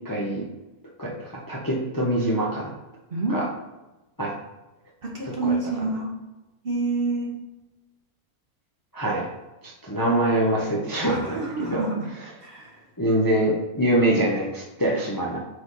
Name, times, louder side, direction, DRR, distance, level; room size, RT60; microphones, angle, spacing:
voice 1, 0.0-0.4 1.0-2.7 3.3-3.5 4.2-4.3 5.2-5.5 8.9-9.3 9.6-11.8 13.0-15.4, right 1 dB, 15° left, -3 dB, 0.8 m, -24 dB
voice 2, 5.0-6.1 6.6-7.3 11.0-12.1 12.4-12.9, right 3 dB, 40° right, -1 dB, 1.2 m, -28 dB
6.1 x 5.0 x 4.0 m, 1.0 s
omnidirectional pair, 1.7 m